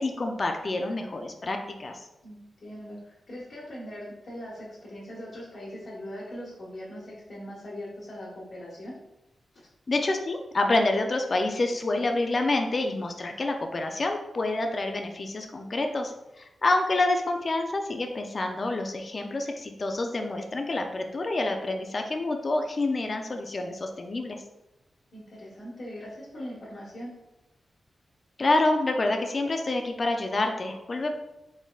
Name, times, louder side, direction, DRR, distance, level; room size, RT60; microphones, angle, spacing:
voice 1, 0.0-2.0 9.9-24.4 28.4-31.1, left 2 dB, 40° left, 4 dB, 0.4 m, -27 dB
voice 2, 2.2-8.9 25.1-27.1, equal, 60° left, -8 dB, 1.2 m, -41 dB
4.1 x 3.6 x 2.3 m, 0.94 s
wide cardioid pair, 100°, 0 cm